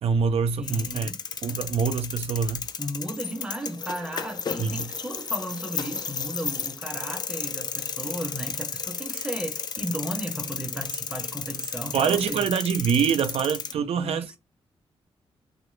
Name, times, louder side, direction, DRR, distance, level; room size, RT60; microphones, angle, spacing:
voice 1, 0.0-1.1 1.4-2.7 4.6-4.9 11.9-14.4, right 6 dB, 80° right, 0.4 m, -25 dB
sound 1, 0.6-13.7, left 6 dB, 45° left, 0.3 m, -33 dB
voice 2, 0.6-1.2 2.8-12.5 13.8-14.4, right 1 dB, 10° right, 0.6 m, -35 dB
2.9 x 2.4 x 3.1 m
wide cardioid pair, 130°, 10 cm